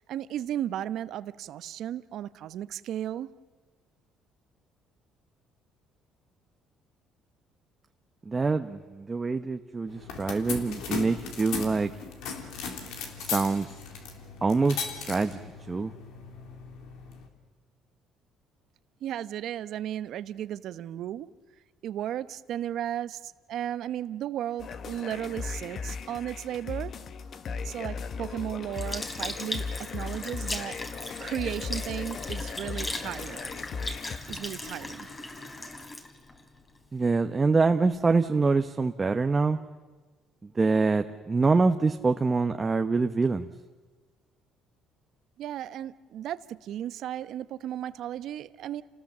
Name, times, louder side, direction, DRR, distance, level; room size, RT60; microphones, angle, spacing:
voice 1, 0.0-3.3 19.0-21.3 21.8-26.9 27.6-30.8 31.2-33.5 34.1-35.1 45.4-48.8, right 11 dB, 70° right, 15 dB, 0.9 m, -35 dB
voice 2, 8.3-11.9 13.2-13.7 14.4-15.4 15.7-15.9 36.9-39.6 40.6-43.5, right 4 dB, 25° right, 7 dB, 1.0 m, -25 dB
sound 1, 9.9-17.3, left 5 dB, 80° left, 3.3 m, -38 dB
sound 2, 24.6-34.2, left 5 dB, 50° left, 1.2 m, -37 dB
Sink (filling or washing) / Liquid, 28.7-37.3 37.9-38.1, left 2 dB, 25° left, 3.2 m, -38 dB
29.5 x 19.0 x 7.4 m, 1.4 s
cardioid pair, 90°, 0 cm